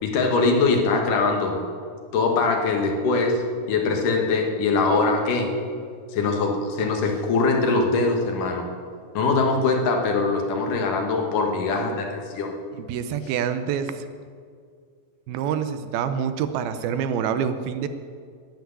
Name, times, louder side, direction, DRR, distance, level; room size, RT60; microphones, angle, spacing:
voice 1, 0.0-1.6 2.1-3.4 3.7-5.5 6.1-8.7 9.1-12.5, left 3 dB, 65° left, 2 dB, 2.9 m, -22 dB
voice 2, 12.8-14.1 15.3-17.9, right 8 dB, 80° right, 10 dB, 2.6 m, -26 dB
12.0 x 9.5 x 9.6 m, 2.1 s
omnidirectional pair, 4.4 m